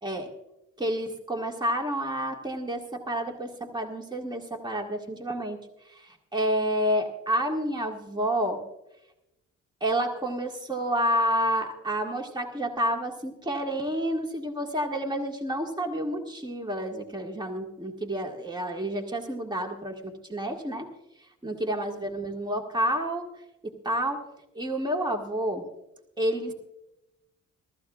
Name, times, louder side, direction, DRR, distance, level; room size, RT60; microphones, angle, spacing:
voice 1, 0.8-5.6 5.9-8.6 9.8-20.9 21.4-23.3 23.6-24.2 24.6-25.6 26.2-26.5, equal, 15° right, 2 dB, 1.8 m, -29 dB
22.5 x 14.0 x 2.4 m, 0.91 s
cardioid pair, 90°, 30 cm